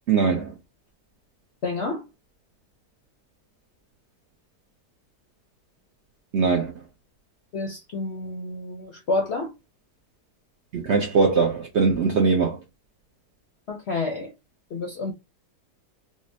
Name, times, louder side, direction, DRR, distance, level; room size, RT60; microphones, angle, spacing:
voice 1, 0.1-0.5 6.3-6.8 10.7-12.6, right 4 dB, 60° right, 0.7 m, -21 dB
voice 2, 1.6-2.1 7.5-9.5 13.7-14.3 14.7-15.1, left 3 dB, 60° left, 0.7 m, -29 dB
4.9 x 2.1 x 2.6 m
omnidirectional pair, 1.8 m